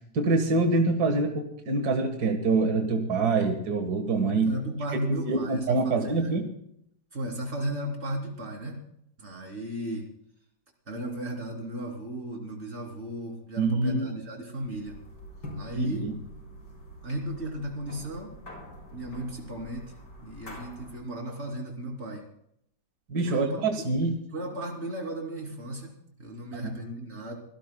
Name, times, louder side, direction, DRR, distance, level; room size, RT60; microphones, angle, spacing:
voice 1, 0.1-4.5 5.1-6.4 13.6-14.2 15.7-16.1 23.1-24.2 26.6-26.7, right 3 dB, 65° right, 4 dB, 2.1 m, -25 dB
voice 2, 4.4-6.4 7.1-8.8 9.2-10.1 10.9-15.0 15.5-16.1 17.0-18.3 18.9-22.2 23.2-23.7 24.3-27.4, right 1 dB, 40° right, 0 dB, 3.4 m, -35 dB
sound 1, 14.6-21.1, equal, 85° left, 4.9 m, -45 dB
25.5 x 17.5 x 2.2 m, 0.73 s
omnidirectional pair, 1.8 m